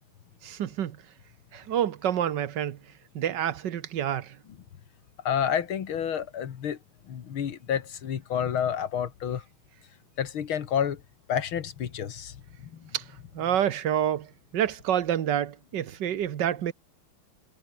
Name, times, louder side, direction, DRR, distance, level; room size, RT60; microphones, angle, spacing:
voice 1, 0.4-1.0 1.5-2.8 3.1-4.3 12.9-13.0 13.3-14.3 14.5-16.7, right 10 dB, 60° right, 1.6 m, -28 dB
voice 2, 5.3-6.8 7.1-9.4 10.2-11.0 11.3-12.4, left 8 dB, 80° left, 2.4 m, -29 dB
omnidirectional pair, 2.3 m